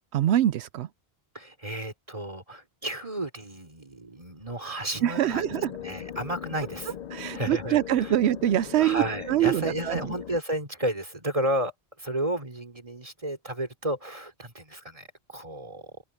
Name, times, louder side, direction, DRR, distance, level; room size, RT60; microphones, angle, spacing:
voice 1, 0.1-0.9 5.0-5.7 7.1-10.1, right 12 dB, 85° right, 0.9 m, -24 dB
voice 2, 1.3-5.4 5.8-7.0 7.3-8.2 8.8-11.7 12.0-15.9, right 1 dB, 30° right, 3.6 m, -32 dB
sound 1, 5.3-10.4, left 9 dB, 55° left, 0.5 m, -39 dB
open air
omnidirectional pair, 1.1 m